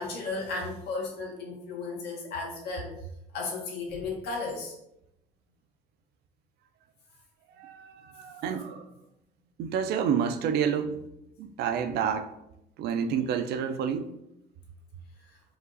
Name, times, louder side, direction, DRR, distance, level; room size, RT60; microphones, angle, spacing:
voice 1, 0.0-2.9 3.3-4.7, left 3 dB, 75° left, 1.4 m, -34 dB
voice 2, 7.6-8.9 9.6-11.0 11.4-12.3 12.8-14.2, right 7 dB, 75° right, 0.5 m, -29 dB
4.9 x 2.5 x 3.9 m
cardioid pair, 110°, 17 cm